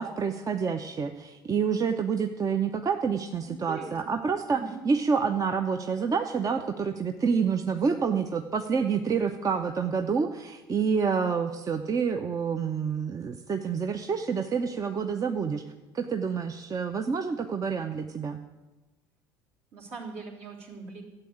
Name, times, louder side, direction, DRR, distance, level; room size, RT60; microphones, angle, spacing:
voice 1, 0.0-15.6 15.9-18.4, right 6 dB, 30° right, 7 dB, 0.7 m, -28 dB
voice 2, 3.5-4.2 4.5-4.8 19.7-21.0, right 4 dB, 60° right, -2 dB, 3.5 m, -41 dB
12.5 x 7.9 x 8.7 m, 1.2 s
hypercardioid pair, 65°, 12 cm